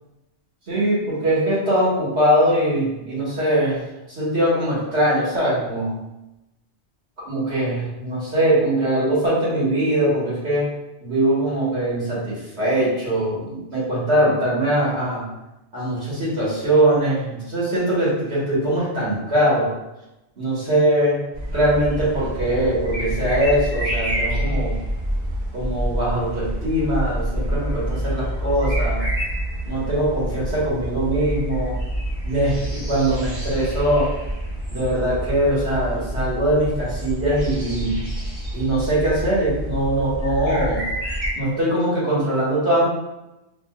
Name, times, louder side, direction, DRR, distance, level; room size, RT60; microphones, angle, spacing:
voice 1, 0.7-6.0 7.2-10.7 11.0-15.3 15.7-19.7 20.4-21.2 21.5-24.7 25.5-29.1 29.6-31.8 32.2-34.1 34.7-38.0 38.5-40.9 41.4-42.8, right 1 dB, 70° right, -9 dB, 1.7 m, -21 dB
sound 1, 21.3-41.3, equal, 50° right, 1.2 m, -27 dB
3.5 x 2.5 x 2.4 m, 0.95 s
omnidirectional pair, 1.1 m